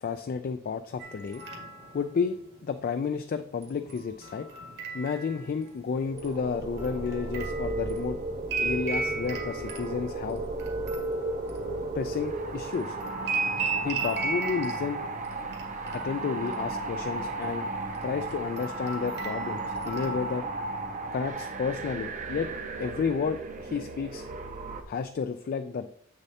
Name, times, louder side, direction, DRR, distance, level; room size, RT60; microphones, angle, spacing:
voice 1, 0.0-1.4 1.9-4.5 4.9-8.2 8.6-10.4 11.9-13.0 13.8-15.0 15.9-17.7 18.0-20.4 21.1-22.5 22.8-24.3 24.9-25.9, left 5 dB, 45° left, 9 dB, 0.3 m, -31 dB
sound 1, 1.0-2.0 3.6-5.7 6.2-12.4 12.7-15.6 15.9-16.8 17.1-17.4 17.9-20.4, right 4 dB, 55° right, 1.5 m, -36 dB
sound 2, 5.9-24.8, right 2 dB, 40° right, 0.7 m, -34 dB
7.2 x 6.5 x 2.8 m, 0.67 s
head